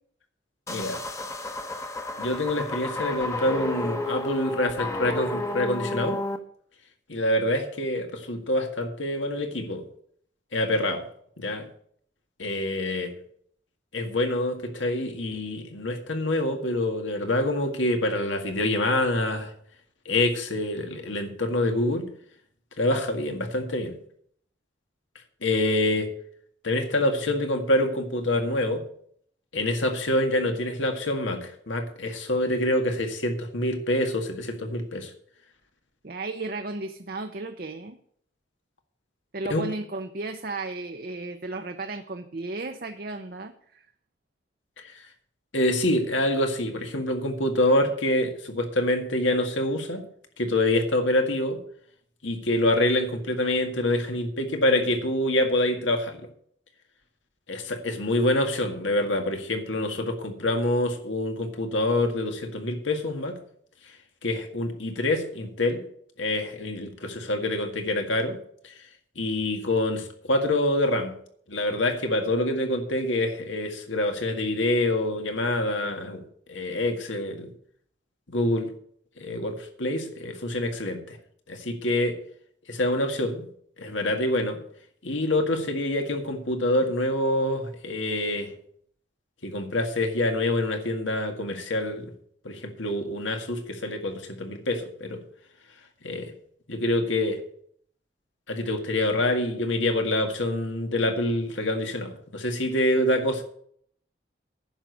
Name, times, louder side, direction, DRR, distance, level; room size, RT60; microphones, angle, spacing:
voice 1, 0.7-1.0 2.2-6.2 7.1-9.8 10.5-11.1 11.4-11.7 12.4-13.1 13.9-19.5 20.1-22.1 22.8-24.0 25.4-26.1 26.6-28.8 29.5-35.1 39.5-39.7 44.8-44.9 45.5-50.0 50.4-51.6 52.2-56.2 57.5-63.4 64.2-65.8 66.2-68.4 68.6-68.7 69.2-71.2 71.5-76.2 76.5-77.5 78.3-78.7 79.2-81.2 81.5-82.2 82.7-83.4 83.8-84.6 85.0-88.5 89.4-92.1 92.4-95.2 96.0-96.3 96.7-97.4 98.5-103.4, left 1 dB, 90° left, 5 dB, 1.9 m, -26 dB
sound 1, 0.7-6.4, left 2 dB, 15° left, 0.9 m, -32 dB
voice 2, 36.0-38.0 39.3-43.9, right 2 dB, 50° right, 6 dB, 0.7 m, -34 dB
10.5 x 6.3 x 8.4 m, 0.63 s
head